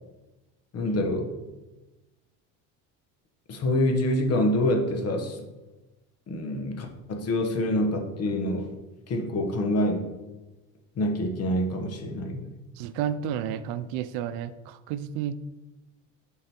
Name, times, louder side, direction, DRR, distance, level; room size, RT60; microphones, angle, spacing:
voice 1, 0.7-1.3 3.5-5.4 6.3-8.7 9.1-10.1 11.0-12.4, left 1 dB, 40° left, 4 dB, 1.1 m, -26 dB
voice 2, 12.8-15.3, right 9 dB, 80° right, 13 dB, 0.5 m, -31 dB
7.5 x 3.9 x 4.4 m, 1.1 s
cardioid pair, 110°, 36 cm